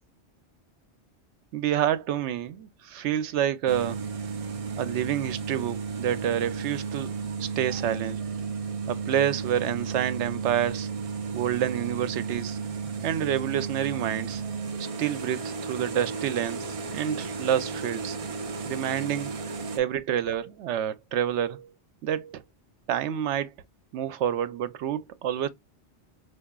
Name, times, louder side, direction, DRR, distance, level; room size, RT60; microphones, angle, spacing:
voice 1, 1.5-4.0 4.8-8.2 8.9-10.9 11.3-12.6 13.0-14.4 15.0-18.2 18.6-19.3 19.8-21.7 22.0-22.4 22.9-23.5 23.9-25.5, right 10 dB, 85° right, 0.9 m, -28 dB
sound 1, 3.7-19.8, right 5 dB, 50° right, 0.4 m, -33 dB
4.7 x 2.5 x 2.2 m
omnidirectional pair, 1.2 m